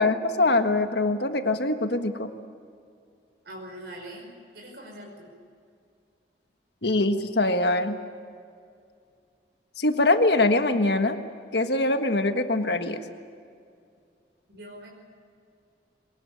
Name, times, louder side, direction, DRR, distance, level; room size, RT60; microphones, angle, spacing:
voice 1, 0.0-2.3 6.8-8.0 9.8-11.2 11.5-13.0, left 2 dB, 65° left, 7 dB, 1.6 m, -23 dB
voice 2, 3.4-5.3 14.5-14.9, right 1 dB, 65° right, 0 dB, 5.3 m, -42 dB
22.5 x 20.0 x 8.6 m, 2.3 s
head